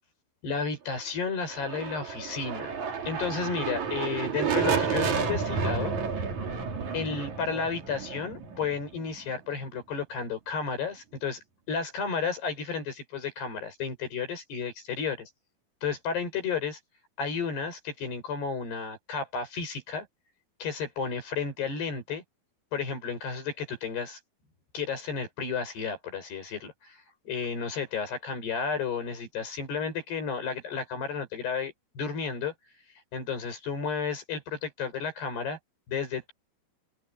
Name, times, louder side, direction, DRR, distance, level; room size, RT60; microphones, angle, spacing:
voice 1, 0.4-2.7 3.1-6.0 6.9-15.3 15.8-16.8 17.2-20.1 20.6-22.2 22.7-24.2 24.7-32.5 33.1-35.6 35.9-36.3, left 5 dB, 85° left, 8.8 m, -32 dB
sound 1, 1.5-9.3, right 6 dB, 50° right, 3.9 m, -31 dB
open air
omnidirectional pair, 4.6 m